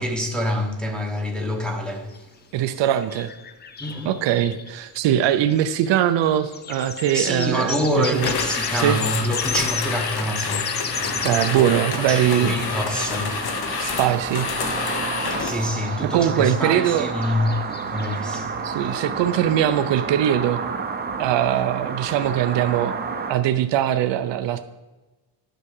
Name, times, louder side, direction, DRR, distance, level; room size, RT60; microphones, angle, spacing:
voice 1, 0.0-2.3 3.8-4.2 7.1-10.8 12.0-13.7 15.3-18.8, equal, ahead, 0.9 m, -26 dB
sound 1, 2.1-2.2 2.8-11.8 12.3-18.2, left 6 dB, 25° left, 0.4 m, -35 dB
voice 2, 2.5-3.3 4.0-8.3 8.7-9.0 11.2-12.6 13.8-14.5 14.8-14.9 16.0-17.1 18.6-20.6 21.2-22.9 23.3-24.6, right 11 dB, 75° right, 0.7 m, -21 dB
sound 2, 8.1-15.7, left 5 dB, 60° left, 1.1 m, -28 dB
sound 3, 10.9-23.3, right 5 dB, 20° right, 0.6 m, -31 dB
10.0 x 4.8 x 6.5 m
cardioid pair, 175°, 43 cm